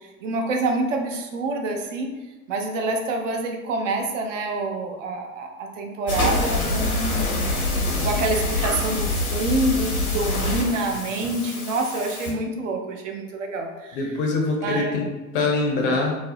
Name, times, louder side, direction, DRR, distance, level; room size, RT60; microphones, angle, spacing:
voice 1, 0.2-2.1 2.5-7.5 8.0-14.0 14.6-14.9, right 2 dB, 60° right, 3 dB, 0.5 m, -27 dB
sound 1, 6.1-12.3, left 2 dB, 85° left, 0.7 m, -25 dB
voice 2, 13.9-16.2, left 3 dB, 40° left, 1 dB, 0.5 m, -24 dB
2.4 x 2.0 x 2.6 m, 1.1 s
figure-of-eight pair, 85°, 43 cm